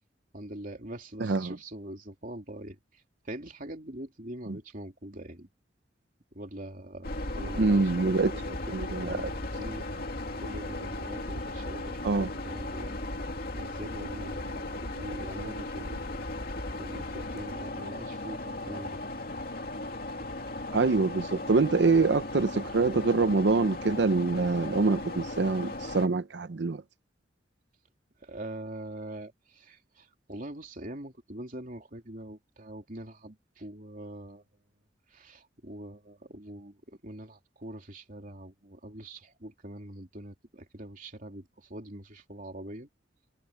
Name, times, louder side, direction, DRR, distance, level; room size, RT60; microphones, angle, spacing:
voice 1, 0.3-5.5 6.3-8.7 9.0-9.9 10.4-13.0 13.5-16.1 16.8-19.0 21.9-22.1 28.2-34.4 35.1-42.9, right 1 dB, 45° right, 3.2 m, -43 dB
voice 2, 1.2-1.5 7.6-8.3 8.7-9.3 12.0-12.3 20.7-26.8, right 3 dB, 65° right, 0.6 m, -25 dB
sound 1, 7.0-26.1, left 2 dB, 55° left, 2.4 m, -36 dB
head